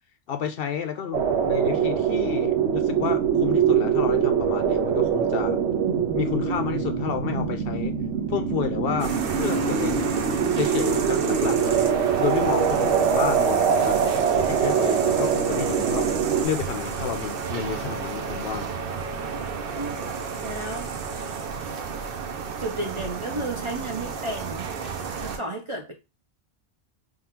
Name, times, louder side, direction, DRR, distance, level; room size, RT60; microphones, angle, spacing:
voice 1, 0.3-5.6 6.1-7.9 8.3-10.1 10.5-11.9 12.2-14.0 14.3-16.1 16.4-18.7, left 8 dB, 65° left, 0.7 m, -30 dB
sound 1, 1.1-16.5, right 7 dB, 85° right, 1.0 m, -23 dB
sound 2, 9.0-25.4, right 5 dB, 60° right, 0.8 m, -32 dB
voice 2, 19.7-20.1 20.4-20.9 22.6-25.9, right 2 dB, 40° right, 0.5 m, -33 dB
3.6 x 2.3 x 4.4 m
omnidirectional pair, 1.1 m